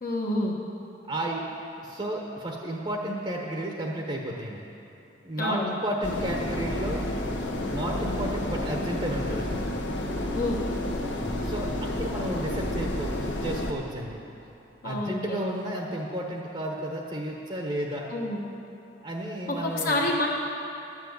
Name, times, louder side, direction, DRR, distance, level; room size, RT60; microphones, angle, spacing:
voice 1, 0.0-0.5 5.4-5.7 10.3-10.6 14.8-15.4 18.1-18.4 19.6-20.3, left 1 dB, 55° left, -3 dB, 1.3 m, -28 dB
voice 2, 1.1-1.4 1.8-4.6 5.2-7.0 7.7-9.6 11.4-14.2 14.8-18.1 19.0-20.0, right 1 dB, 30° right, 0 dB, 1.0 m, -32 dB
sound 1, 6.0-13.7, left 1 dB, 75° left, 1.2 m, -30 dB
11.0 x 7.3 x 8.0 m, 3.0 s
head